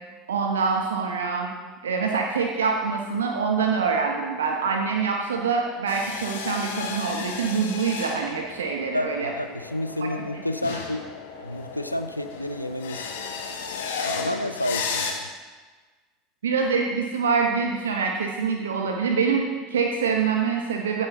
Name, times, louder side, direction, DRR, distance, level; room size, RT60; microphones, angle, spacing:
voice 1, 0.3-1.5 1.8-9.3 10.0-10.1 10.7-10.8 16.4-21.1, right 5 dB, 70° right, 2 dB, 0.9 m, -25 dB
sound 1, 5.9-15.1, left 5 dB, 65° left, 1.1 m, -34 dB
voice 2, 8.9-11.0 11.4-13.2 14.0-15.3, left 1 dB, 90° left, 9 dB, 0.5 m, -30 dB
14.5 x 8.1 x 3.0 m, 1.4 s
figure-of-eight pair, 75°, 0 cm